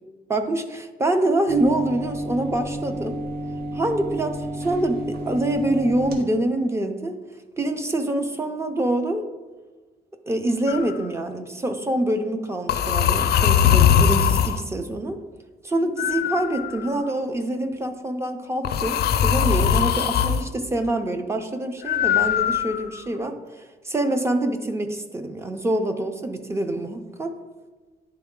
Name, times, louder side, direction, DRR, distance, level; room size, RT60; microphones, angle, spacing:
voice 1, 0.3-3.2 3.7-7.2 7.6-9.2 10.3-15.2 15.6-23.4 23.8-27.3, right 1 dB, 15° right, 7 dB, 0.4 m, -25 dB
sound 1, 1.5-6.2, equal, 70° right, 1.1 m, -31 dB
sound 2, 10.7-11.0 12.7-14.6 16.0-17.1 18.6-20.4 21.9-23.1, left 8 dB, 80° left, 0.4 m, -20 dB
9.9 x 3.8 x 3.6 m, 1.3 s
wide cardioid pair, 175°, 16 cm